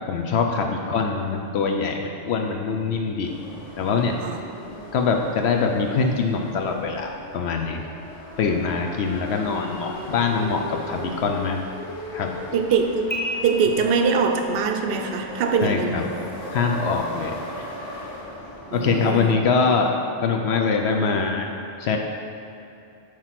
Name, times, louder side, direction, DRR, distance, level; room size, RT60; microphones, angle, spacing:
voice 1, 0.1-3.3 3.8-4.2 4.9-7.8 8.4-11.6 12.1-12.3 15.6-16.0 16.5-17.7 18.7-19.9 20.2-21.5 21.8-22.0, left 5 dB, 70° left, 3 dB, 0.8 m, -23 dB
sound 1, 3.2-18.9, left 1 dB, 90° left, 1.5 m, -38 dB
sound 2, 9.5-10.8 13.1-14.6, left 1 dB, 15° left, 0.4 m, -34 dB
voice 2, 12.5-16.1 18.7-19.3, right 5 dB, 60° right, 5 dB, 0.7 m, -23 dB
8.4 x 3.1 x 5.8 m, 2.7 s
omnidirectional pair, 1.2 m